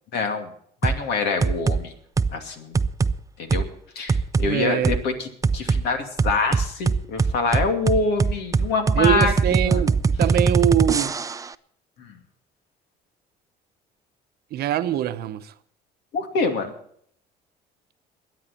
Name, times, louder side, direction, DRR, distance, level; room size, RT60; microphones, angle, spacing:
voice 1, 0.1-0.5 0.8-1.9 2.3-2.8 3.4-3.6 4.0-5.3 5.5-9.8 12.0-12.2 16.1-16.7, left 4 dB, 80° left, 2.6 m, -25 dB
sound 1, 0.8-1.0 1.4-1.8 2.2-2.4 2.7-3.1 3.5-3.6 4.1-4.5 4.8-5.0 5.4-5.8 6.2-11.5, right 4 dB, 20° right, 0.5 m, -21 dB
voice 2, 4.4-5.0 9.0-11.2 14.5-15.5, right 11 dB, 70° right, 0.8 m, -23 dB
21.5 x 9.5 x 4.3 m
cardioid pair, 110°, 17 cm